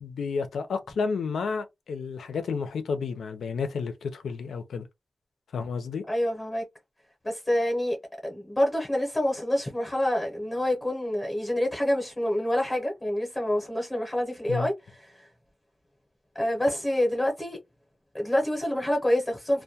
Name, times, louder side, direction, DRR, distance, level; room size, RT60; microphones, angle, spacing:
voice 1, 0.0-4.9 5.5-6.0 14.5-14.7, left 5 dB, 90° left, 0.5 m, -31 dB
voice 2, 6.1-6.6 7.2-8.0 8.2-14.7 16.3-17.6 18.1-19.6, left 1 dB, 15° left, 0.7 m, -27 dB
2.2 x 2.2 x 2.7 m
wide cardioid pair, 180°, 0 cm